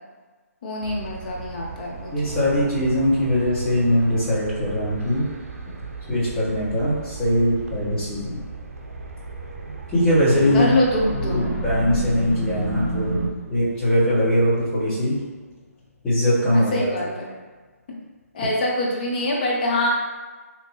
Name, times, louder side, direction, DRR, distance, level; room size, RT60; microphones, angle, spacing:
voice 1, 0.6-2.6 10.5-11.5 16.4-17.3 17.9-18.0 18.3-19.9, left 1 dB, 35° left, -2 dB, 0.6 m, -25 dB
sound 1, 0.8-13.3, right 3 dB, 65° right, 0.6 m, -34 dB
voice 2, 2.1-5.2 6.1-8.4 9.9-10.7 11.2-13.2 13.5-15.2 16.0-17.1, equal, 10° left, -12 dB, 1.2 m, -21 dB
sound 2, 10.1-15.9, left 1 dB, 50° left, 1.1 m, -34 dB
3.3 x 2.8 x 2.9 m, 1.4 s
hypercardioid pair, 160°, 8 cm